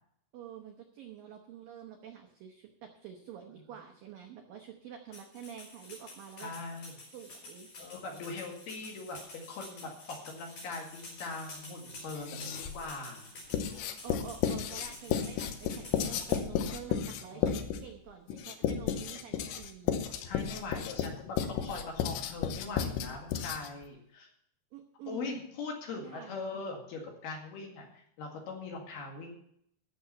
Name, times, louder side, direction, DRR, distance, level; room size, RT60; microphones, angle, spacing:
voice 1, 0.3-6.5 7.1-7.7 14.0-20.0 24.7-25.4 25.9-26.4, right 9 dB, 75° right, 3 dB, 2.0 m, -48 dB
sound 1, 5.1-16.4, left 2 dB, 40° left, 6.1 m, -49 dB
voice 2, 6.4-6.9 7.8-13.3 17.3-17.6 20.2-24.3 25.1-29.3, left 3 dB, 60° left, 1 dB, 3.6 m, -41 dB
sound 2, 10.4-16.0, right 1 dB, 40° right, 3.5 m, -54 dB
Writing, 12.2-12.9 13.5-23.9, left 8 dB, 75° left, 3.0 m, -33 dB
15.5 x 7.0 x 5.7 m, 0.71 s
omnidirectional pair, 5.7 m